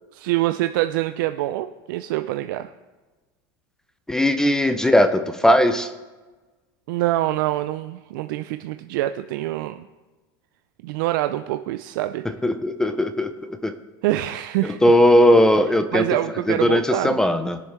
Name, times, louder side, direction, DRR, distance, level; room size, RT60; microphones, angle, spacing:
voice 1, 0.1-2.7 6.9-9.8 10.8-12.2 14.0-14.8 15.9-17.2, right 15 dB, 70° right, 10 dB, 0.4 m, -25 dB
voice 2, 4.1-5.9 12.4-13.3 13.6-13.8 14.6-16.1 16.5-17.6, left 1 dB, 5° left, 10 dB, 0.5 m, -18 dB
21.0 x 7.1 x 3.3 m, 1.2 s
supercardioid pair, 150°, 11 cm